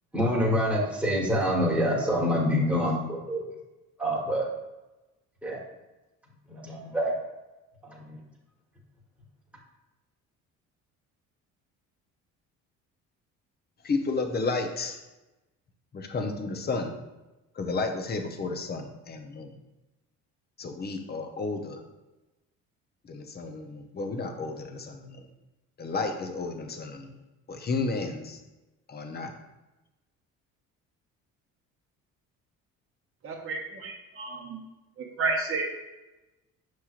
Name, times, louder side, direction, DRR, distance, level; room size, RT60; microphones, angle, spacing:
voice 1, 0.1-3.4 4.0-4.5 5.4-5.6 6.5-7.1 7.8-8.2, equal, 5° right, -4 dB, 1.3 m, -26 dB
voice 2, 13.8-15.0 15.9-16.9 17.6-19.5 20.6-21.8 23.0-25.3 25.8-27.1 27.5-28.4 28.9-29.3, left 3 dB, 30° left, 5 dB, 0.6 m, -32 dB
voice 3, 33.2-34.6 35.2-35.6, right 3 dB, 40° right, -2 dB, 0.8 m, -31 dB
5.5 x 3.1 x 2.4 m, 1.0 s
supercardioid pair, 75°, 34 cm